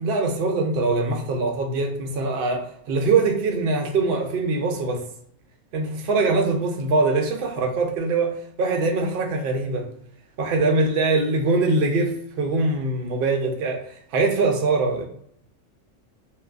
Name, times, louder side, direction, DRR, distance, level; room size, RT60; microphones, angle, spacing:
voice 1, 0.0-5.0 5.7-9.9 10.4-15.0, right 3 dB, 65° right, 3 dB, 0.6 m, -23 dB
2.7 x 2.3 x 2.3 m, 0.66 s
omnidirectional pair, 1.4 m